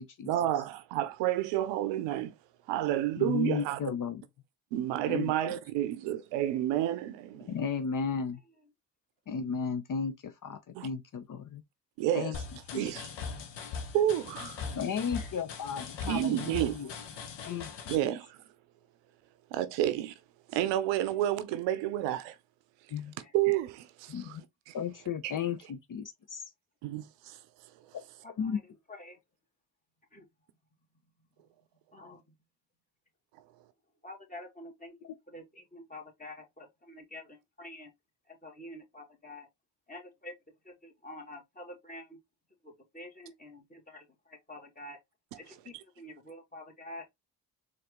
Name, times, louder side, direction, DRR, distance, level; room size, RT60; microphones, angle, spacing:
voice 1, 0.3-2.3 2.7-3.8 4.7-7.5 10.7-10.9 12.0-12.4 12.7-13.1 13.9-14.6 16.1-16.9 17.9-18.4 19.5-20.1 20.5-22.4 23.3-24.4 24.7-24.8 25.2-25.3 26.8-27.4, right 12 dB, 85° right, 0.6 m, -30 dB
voice 2, 3.2-4.2 5.1-5.3 7.5-8.4 9.3-11.6 12.1-12.3 12.7-12.9 14.8-16.9 17.4-17.7 22.9-23.1 24.1-24.4 24.7-26.4 28.4-28.6, left 6 dB, 45° left, 0.7 m, -34 dB
sound 1, 12.3-18.0, left 5 dB, 75° left, 1.0 m, -40 dB
voice 3, 14.4-14.7 15.0-15.3 17.4-17.6 23.2-23.3 28.2-28.6 28.9-29.2 30.1-30.3 31.9-32.4 34.0-37.9 38.3-39.5 39.9-40.3 40.6-42.2 42.6-45.0 45.4-47.1, left 1 dB, 20° left, 1.9 m, -48 dB
4.1 x 2.6 x 3.6 m
hypercardioid pair, 45°, 43 cm